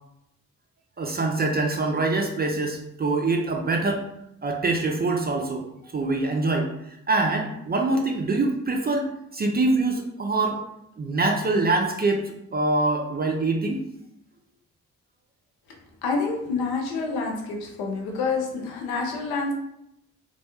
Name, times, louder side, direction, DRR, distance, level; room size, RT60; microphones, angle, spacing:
voice 1, 1.0-4.0 4.4-5.6 5.9-6.7 7.1-10.6 11.0-13.8, right 3 dB, 30° right, 2 dB, 0.4 m, -24 dB
voice 2, 16.0-19.5, left 4 dB, 85° left, 1 dB, 0.6 m, -27 dB
2.3 x 2.1 x 2.9 m, 0.80 s
supercardioid pair, 40°, 36 cm